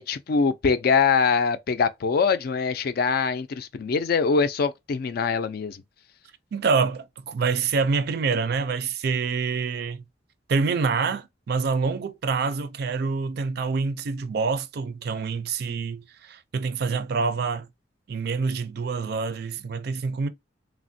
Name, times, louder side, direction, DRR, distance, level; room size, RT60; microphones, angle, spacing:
voice 1, 0.0-5.8, left 5 dB, 55° left, 0.3 m, -23 dB
voice 2, 6.5-10.0 10.5-17.7 18.1-20.3, right 4 dB, 60° right, 0.4 m, -26 dB
3.3 x 2.1 x 2.6 m
head